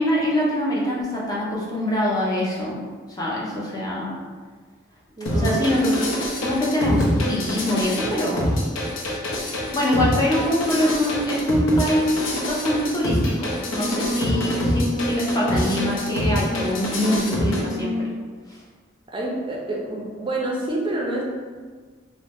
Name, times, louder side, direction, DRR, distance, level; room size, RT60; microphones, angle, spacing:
voice 1, 0.0-2.8 3.1-4.2 5.3-8.5 9.7-17.9, left 1 dB, 20° left, -6 dB, 0.6 m, -24 dB
voice 2, 5.2-5.6 19.1-21.2, right 2 dB, 25° right, -2 dB, 0.5 m, -28 dB
sound 1, 5.3-17.6, left 1 dB, 85° left, 0.6 m, -26 dB
Singing, 13.3-18.2, left 1 dB, 45° left, 1.3 m, -29 dB
2.7 x 2.1 x 3.4 m, 1.5 s
head